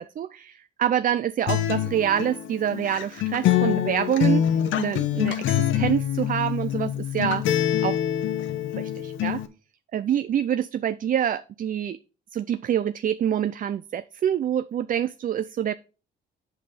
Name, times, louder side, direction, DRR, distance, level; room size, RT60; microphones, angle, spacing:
voice 1, 0.0-4.4 4.8-7.4 7.8-8.0 8.8-9.4 9.9-12.0 12.3-15.7, right 9 dB, 45° right, 13 dB, 0.4 m, -26 dB
Acoustic guitar, 1.5-9.5, left 11 dB, 80° left, 0.9 m, -25 dB
8.1 x 5.5 x 4.9 m, 0.35 s
cardioid pair, 90°, 20 cm